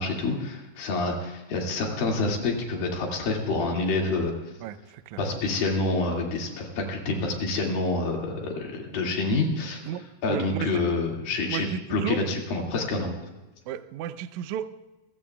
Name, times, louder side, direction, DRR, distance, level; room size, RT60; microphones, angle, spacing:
voice 1, 0.0-4.4 5.2-9.9 10.2-13.1, left 3 dB, 70° left, 0 dB, 4.0 m, -27 dB
voice 2, 4.6-5.2 9.9-10.8 11.5-12.2 13.7-14.7, right 10 dB, 90° right, 11 dB, 1.6 m, -34 dB
28.0 x 15.0 x 2.3 m, 1.1 s
omnidirectional pair, 4.3 m